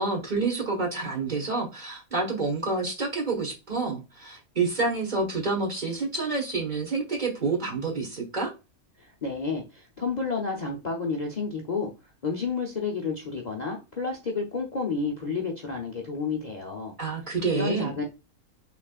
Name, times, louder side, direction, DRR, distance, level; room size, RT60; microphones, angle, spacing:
voice 1, 0.0-8.5 17.0-17.9, right 3 dB, 35° right, 1.5 m, -28 dB
voice 2, 9.0-16.9 17.2-18.1, left 4 dB, 35° left, 0.8 m, -31 dB
5.9 x 3.6 x 2.4 m
omnidirectional pair, 1.5 m